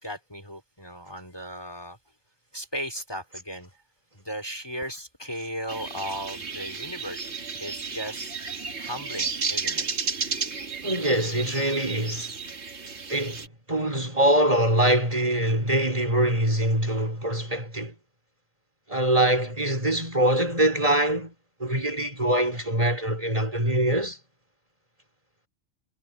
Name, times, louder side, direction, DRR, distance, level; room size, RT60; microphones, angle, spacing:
voice 1, 0.0-2.0 2.5-3.7 4.1-7.3 7.6-8.3 8.8-9.9, equal, 20° left, 3.4 m, -36 dB
sound 1, 5.7-13.5, right 5 dB, 70° right, 1.9 m, -33 dB
voice 2, 10.8-12.3 13.1-17.9 18.9-21.3 21.6-24.2, right 1 dB, 30° right, 4.6 m, -24 dB
omnidirectional pair, 1.2 m